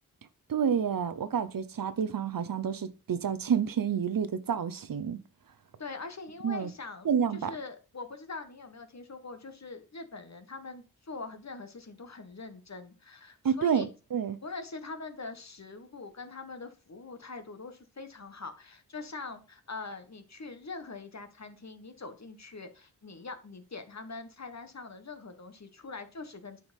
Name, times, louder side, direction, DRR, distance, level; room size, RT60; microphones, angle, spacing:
voice 1, 0.5-5.2 6.4-6.7 7.0-7.5 13.4-14.4, right 7 dB, 70° right, 0.9 m, -29 dB
voice 2, 5.8-13.9 14.4-26.6, left 3 dB, 50° left, 1.6 m, -43 dB
9.1 x 4.6 x 5.4 m
cardioid pair, 50°, 36 cm